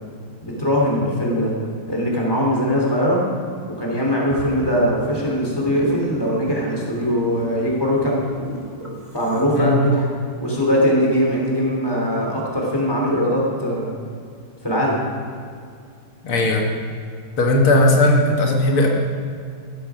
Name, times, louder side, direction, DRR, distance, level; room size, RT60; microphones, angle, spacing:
voice 1, 0.4-1.5 1.9-3.2 3.8-8.2 9.1-10.1 10.4-13.9 14.6-15.0, equal, 10° left, -2 dB, 3.5 m, -21 dB
sound 1, 4.3-9.5, equal, 15° right, 1.9 m, -35 dB
voice 2, 16.2-16.7 17.4-18.9, left 1 dB, 85° left, 0 dB, 2.5 m, -17 dB
15.0 x 13.5 x 5.1 m, 2.3 s
omnidirectional pair, 2.3 m